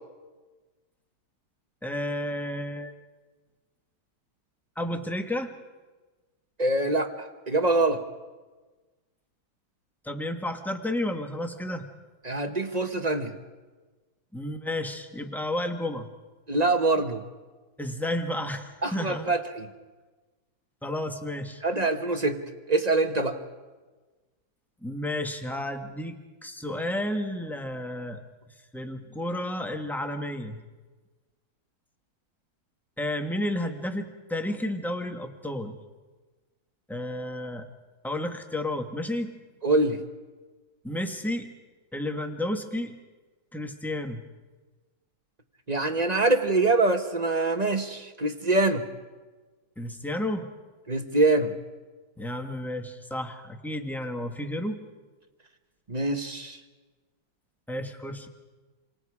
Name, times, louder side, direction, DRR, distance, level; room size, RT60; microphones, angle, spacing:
voice 1, 1.8-2.9 4.7-5.5 10.0-11.8 14.3-16.1 17.8-19.3 20.8-21.6 24.8-28.2 28.7-30.6 33.0-35.8 36.9-37.6 38.0-39.3 40.8-41.5 41.9-43.0 43.5-44.2 49.8-50.5 52.2-54.8 57.7-58.3, left 1 dB, ahead, 5 dB, 1.2 m, -32 dB
voice 2, 6.6-8.0 12.2-13.3 16.5-17.2 18.8-19.7 21.6-23.4 39.6-40.0 45.7-48.8 50.9-51.5 55.9-56.6, right 2 dB, 25° right, 7 dB, 0.9 m, -24 dB
28.5 x 25.0 x 4.9 m, 1.3 s
omnidirectional pair, 2.2 m